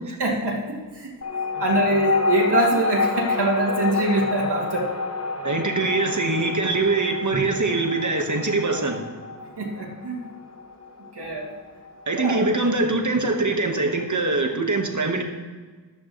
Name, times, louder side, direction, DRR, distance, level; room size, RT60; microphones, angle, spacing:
voice 1, 0.2-1.1 1.6-4.9 5.5-5.6 9.6-10.2 11.1-11.5 12.1-12.5, right 2 dB, 65° right, -3 dB, 2.7 m, -24 dB
sound 1, 1.2-12.1, left 4 dB, 35° left, 1.0 m, -28 dB
voice 2, 5.4-9.1 12.1-15.2, right 3 dB, 40° right, 3 dB, 1.6 m, -23 dB
14.5 x 12.0 x 3.2 m, 1.4 s
wide cardioid pair, 70°, 44 cm